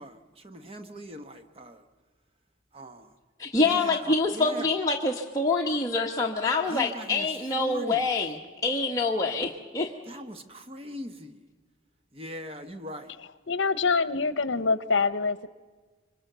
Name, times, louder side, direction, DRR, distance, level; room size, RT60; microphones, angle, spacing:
voice 1, 0.0-1.8 2.7-3.1 3.6-4.7 6.7-8.0 10.1-11.5 12.1-13.1, equal, 30° right, 7 dB, 1.2 m, -41 dB
voice 2, 3.4-9.9, left 3 dB, 20° left, -1 dB, 1.2 m, -26 dB
voice 3, 13.5-15.5, left 4 dB, 65° left, 14 dB, 0.9 m, -25 dB
26.0 x 23.5 x 6.8 m, 1.4 s
head